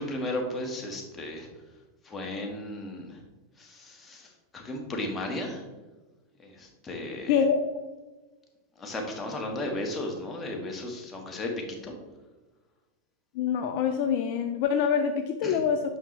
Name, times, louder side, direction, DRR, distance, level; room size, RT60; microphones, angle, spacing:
voice 1, 0.0-1.5 2.0-3.2 3.6-5.6 6.4-7.3 8.8-11.9 15.4-15.6, left 1 dB, 20° left, 1 dB, 1.5 m, -35 dB
voice 2, 7.3-7.6 13.3-15.8, left 7 dB, 55° left, 7 dB, 0.4 m, -25 dB
5.8 x 5.7 x 3.1 m, 1.2 s
hypercardioid pair, 95°, 0 cm